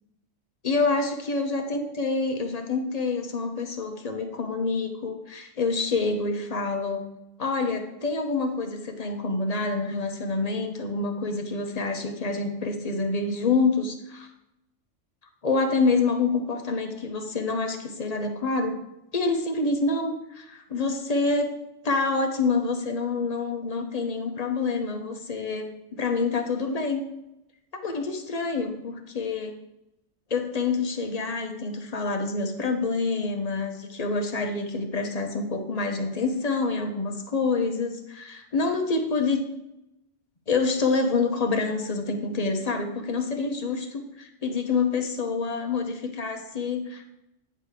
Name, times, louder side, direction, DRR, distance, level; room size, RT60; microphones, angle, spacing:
voice 1, 0.6-7.0 7.4-14.3 15.4-18.8 19.1-21.5 21.8-27.0 27.8-29.5 30.3-39.4 40.5-47.1, left 3 dB, 35° left, 5 dB, 0.8 m, -27 dB
9.1 x 3.3 x 6.4 m, 0.88 s
omnidirectional pair, 1.3 m